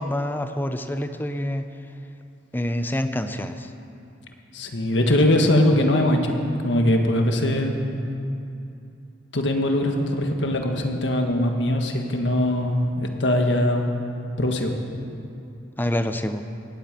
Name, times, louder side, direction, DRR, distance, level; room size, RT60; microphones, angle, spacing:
voice 1, 0.0-1.7 2.5-3.7 15.8-16.4, left 1 dB, 10° left, 9 dB, 0.6 m, -27 dB
voice 2, 4.5-7.8 9.3-13.9 14.4-14.8, left 1 dB, 80° left, 3 dB, 1.7 m, -21 dB
19.0 x 8.8 x 7.5 m, 2.6 s
head